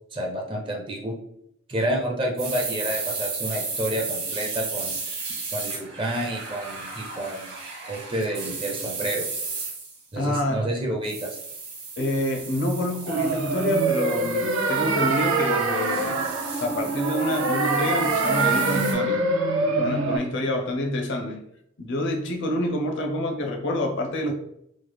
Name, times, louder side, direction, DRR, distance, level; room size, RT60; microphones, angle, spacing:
voice 1, 0.1-1.2 1.7-5.0 5.5-7.6 7.9-9.3 10.1-11.3, right 1 dB, 25° right, 0.5 m, -29 dB
sound 1, 2.4-10.0 11.0-18.9, right 4 dB, 50° right, 1.1 m, -34 dB
voice 2, 10.2-10.7 12.0-16.2 16.6-19.2 19.8-21.4 21.8-24.3, left 1 dB, 60° left, 0.5 m, -27 dB
sound 2, 13.1-20.2, right 3 dB, 80° right, 0.6 m, -24 dB
3.1 x 2.1 x 3.3 m
head